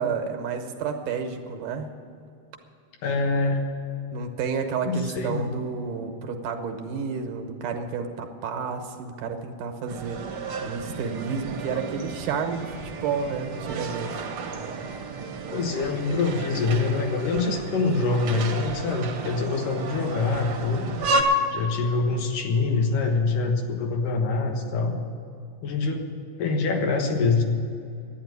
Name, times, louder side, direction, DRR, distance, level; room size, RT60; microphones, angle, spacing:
voice 1, 0.0-1.9 4.1-10.2 10.6-14.3, right 5 dB, 80° right, 5 dB, 2.6 m, -30 dB
voice 2, 3.0-3.6 4.9-5.4 15.5-20.9 21.5-24.9 25.6-26.1 26.4-27.4, left 3 dB, 85° left, 3 dB, 3.0 m, -25 dB
sound 1, 9.9-21.2, right 3 dB, 55° right, 1.7 m, -33 dB
11.5 x 9.4 x 9.4 m, 2.6 s
omnidirectional pair, 3.6 m